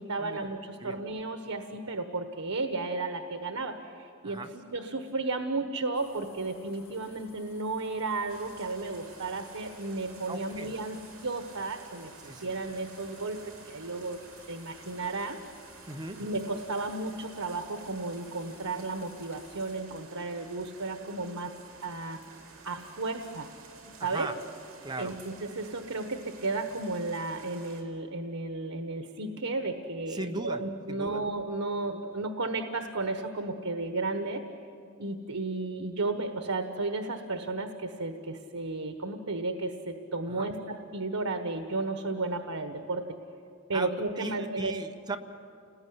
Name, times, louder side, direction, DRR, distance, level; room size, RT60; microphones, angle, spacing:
voice 1, 0.0-14.2 14.5-15.4 16.2-21.5 21.8-22.2 22.6-23.5 23.9-24.3 25.0-34.4 35.0-43.0 43.7-44.8, right 3 dB, 85° right, 7 dB, 1.4 m, -33 dB
sound 1, 5.9-19.8, left 4 dB, 65° left, 5.5 m, -58 dB
sound 2, 8.3-27.8, right 4 dB, 60° right, 4.1 m, -52 dB
voice 2, 10.3-10.8 12.2-12.5 15.9-16.2 24.0-24.3 24.8-25.1 30.1-31.2 40.3-40.5 43.7-45.2, right 2 dB, 20° right, 5 dB, 1.2 m, -38 dB
29.5 x 20.5 x 9.7 m, 2.6 s
head